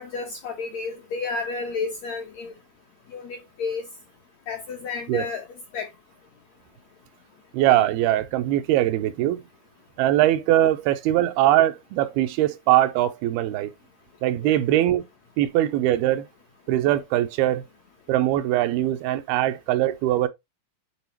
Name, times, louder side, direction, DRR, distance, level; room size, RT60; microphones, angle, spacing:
voice 1, 0.0-2.5 3.1-3.8 4.5-5.4 5.7-5.9 14.4-14.6, left 4 dB, 70° left, 1.7 m, -31 dB
voice 2, 7.5-9.4 10.0-13.7 14.2-15.1 15.4-16.3 16.7-17.7 18.1-20.3, right 13 dB, 85° right, 2.7 m, -21 dB
10.0 x 4.1 x 2.9 m
omnidirectional pair, 4.4 m